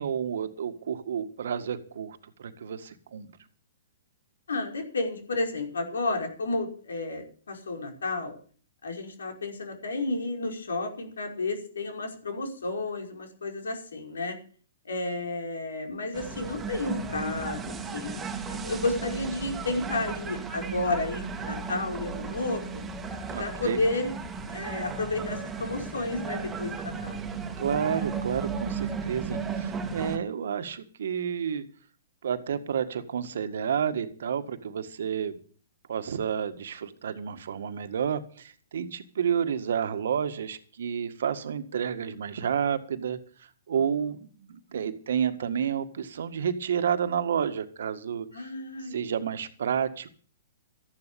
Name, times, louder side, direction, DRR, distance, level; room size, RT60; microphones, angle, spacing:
voice 1, 0.0-3.3 23.3-23.8 27.6-31.6 32.2-35.4 35.9-43.2 43.7-48.5 48.9-50.1, right 8 dB, 70° right, 10 dB, 1.8 m, -30 dB
voice 2, 4.5-8.4 8.8-14.4 14.9-22.8 23.4-24.1 24.5-27.2 43.7-43.8 48.3-49.3, left 2 dB, 85° left, 3 dB, 5.2 m, -32 dB
sound 1, 16.1-30.2, right 5 dB, 15° right, 2.2 m, -35 dB
14.0 x 11.5 x 7.0 m, 0.43 s
hypercardioid pair, 130°, 0 cm